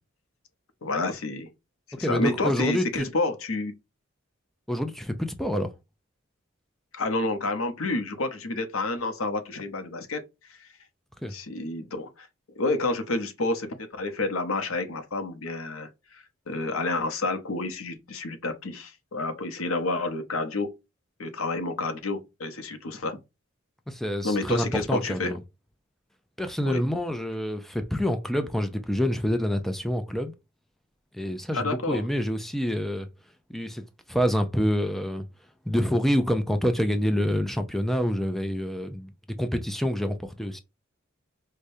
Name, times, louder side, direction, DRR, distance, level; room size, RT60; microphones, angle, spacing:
voice 1, 0.8-1.5 2.0-3.7 6.9-10.2 10.6-10.7 11.3-12.3 12.6-20.7 21.2-23.2 24.2-25.3 26.6-26.8 31.5-32.0, left 2 dB, 85° left, 0.8 m, -29 dB
voice 2, 1.9-2.8 4.7-5.7 11.2-11.3 23.9-25.4 26.4-30.3 31.1-33.1 33.5-33.8 34.1-35.3 35.7-39.1 39.4-40.6, equal, ahead, 0.4 m, -27 dB
4.8 x 2.2 x 2.6 m
head